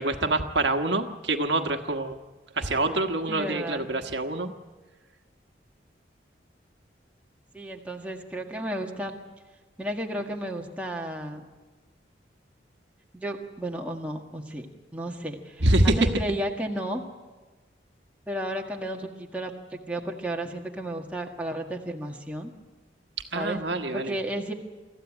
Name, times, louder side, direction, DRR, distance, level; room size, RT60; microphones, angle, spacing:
voice 1, 0.0-2.2 2.5-4.5 15.6-16.1 23.3-24.2, right 2 dB, 75° right, 6 dB, 1.4 m, -25 dB
voice 2, 3.3-3.9 7.5-9.2 9.8-11.4 13.1-14.7 14.9-17.0 18.3-22.5 23.3-23.6 23.9-24.5, right 1 dB, 10° right, 0 dB, 1.7 m, -33 dB
24.0 x 14.5 x 9.9 m, 1.3 s
head